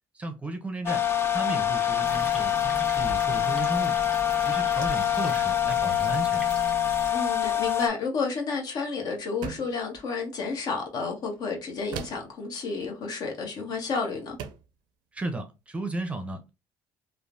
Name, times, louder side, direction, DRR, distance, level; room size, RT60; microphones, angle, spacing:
voice 1, 0.1-1.0 1.3-4.0 4.4-6.4 15.1-16.5, right 2 dB, 15° right, 0.5 m, -34 dB
sound 1, 0.9-7.9, left 10 dB, 30° left, 0.4 m, -25 dB
sound 2, 2.0-7.1, right 1 dB, 10° left, 1.4 m, -40 dB
voice 2, 7.1-14.4, left 4 dB, 60° left, 1.0 m, -31 dB
sound 3, 9.4-9.8 11.9-12.4 13.7-13.8 14.4-14.7, right 7 dB, 80° right, 0.4 m, -37 dB
3.0 x 2.1 x 2.5 m
cardioid pair, 90°, 8 cm